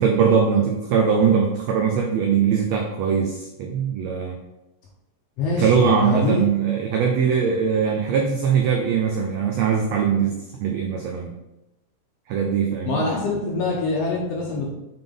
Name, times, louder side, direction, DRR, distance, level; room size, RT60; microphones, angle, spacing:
voice 1, 0.0-4.4 5.6-11.3 12.3-13.0, right 6 dB, 85° right, 2 dB, 1.5 m, -21 dB
voice 2, 5.4-6.5 12.8-14.7, left 3 dB, 65° left, -3 dB, 1.6 m, -24 dB
6.9 x 3.8 x 3.7 m, 0.92 s
omnidirectional pair, 3.8 m